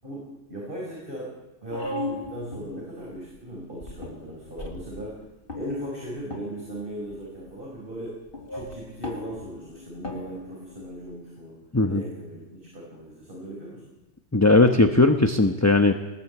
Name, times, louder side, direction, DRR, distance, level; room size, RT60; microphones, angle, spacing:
voice 1, 0.0-1.3 1.6-5.2 5.5-8.2 8.5-11.6 11.8-13.8, right 1 dB, 45° right, -4 dB, 5.3 m, -38 dB
sound 1, 1.7-3.2 3.8-5.1 5.5-6.8 7.1-7.5 8.3-11.2, left 2 dB, 45° left, 3.2 m, -37 dB
voice 2, 11.7-12.0 14.3-16.0, left 2 dB, 15° left, 6 dB, 1.0 m, -18 dB
21.5 x 20.5 x 8.3 m, 1.0 s
omnidirectional pair, 1.3 m